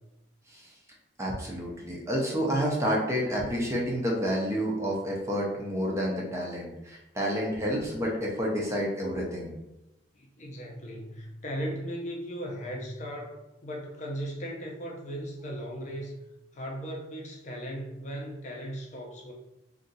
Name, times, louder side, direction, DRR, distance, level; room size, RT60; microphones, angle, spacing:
voice 1, 1.2-9.5, equal, 15° right, -3 dB, 0.5 m, -29 dB
voice 2, 10.1-16.2 16.5-19.3, equal, 40° left, -1 dB, 0.5 m, -37 dB
2.6 x 2.3 x 3.9 m, 0.93 s
head